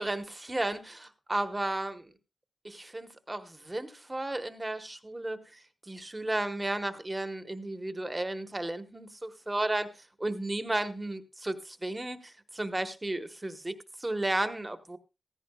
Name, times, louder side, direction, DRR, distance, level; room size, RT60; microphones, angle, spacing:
voice 1, 0.0-2.1 2.6-9.9 10.2-15.0, right 2 dB, 15° right, 1.0 m, -34 dB
15.5 x 15.0 x 2.2 m
wide cardioid pair, 145°, 0 cm